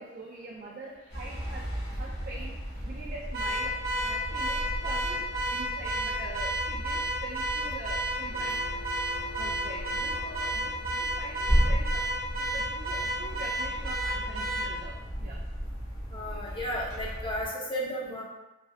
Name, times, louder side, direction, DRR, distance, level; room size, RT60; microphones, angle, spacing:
voice 1, 0.0-2.5 2.8-8.6 9.4-15.4, right 2 dB, 45° right, -4 dB, 0.4 m, -44 dB
sound 1, 1.1-17.5, equal, 55° left, 0.9 m, -34 dB
Car / Alarm, 3.3-14.8, right 1 dB, 90° right, 0.6 m, -32 dB
sound 2, 8.3-11.3, left 1 dB, 80° left, 0.5 m, -47 dB
voice 2, 16.1-18.2, equal, 25° left, -3 dB, 0.6 m, -33 dB
3.3 x 2.6 x 2.2 m, 1.0 s
head